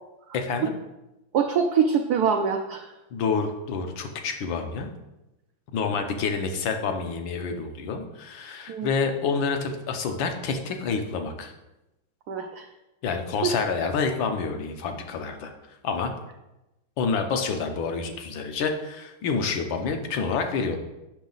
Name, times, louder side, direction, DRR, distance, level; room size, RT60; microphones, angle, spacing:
voice 1, 0.3-0.7 3.1-4.9 5.7-11.5 13.0-15.5 15.8-16.1 17.0-20.8, left 5 dB, 70° left, 5 dB, 1.5 m, -28 dB
voice 2, 1.3-2.9 8.7-8.9 12.3-12.7 13.4-13.5, right 6 dB, 75° right, 3 dB, 0.9 m, -24 dB
7.3 x 6.2 x 3.9 m, 0.96 s
omnidirectional pair, 2.3 m